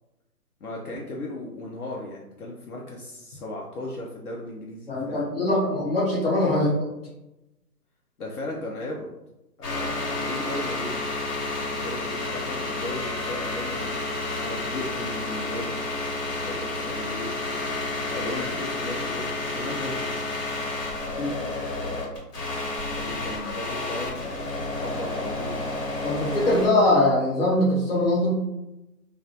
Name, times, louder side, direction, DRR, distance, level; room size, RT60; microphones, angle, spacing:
voice 1, 0.6-5.3 8.2-9.1 9.6-10.9 11.7-13.9 14.4-15.8 16.4-17.3 18.1-20.1 21.8-22.1 22.9-25.5, left 1 dB, 70° left, -3 dB, 0.6 m, -36 dB
voice 2, 4.9-6.7 21.1-21.3 26.0-28.4, left 1 dB, 40° left, -6 dB, 0.8 m, -22 dB
sound 1, 9.6-26.7, left 2 dB, 85° left, 1.1 m, -30 dB
2.2 x 2.1 x 2.6 m, 0.95 s
hypercardioid pair, 180°, 48 cm